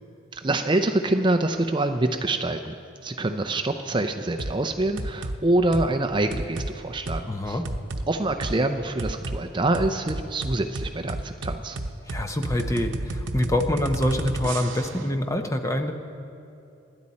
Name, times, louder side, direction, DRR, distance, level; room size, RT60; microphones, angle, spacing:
voice 1, 0.3-2.7 3.0-7.6 8.1-11.8, right 2 dB, 25° right, 6 dB, 0.5 m, -25 dB
sound 1, 4.4-4.6 5.0-5.4 5.7-5.9 6.3-6.7 7.1-7.2 7.6-8.0 8.4-8.5 9.0-9.4 9.7-15.0, right 2 dB, 65° right, 0.9 m, -31 dB
voice 2, 7.3-7.6 12.1-15.9, left 1 dB, 15° left, 5 dB, 0.7 m, -25 dB
27.5 x 11.0 x 4.2 m, 2.8 s
head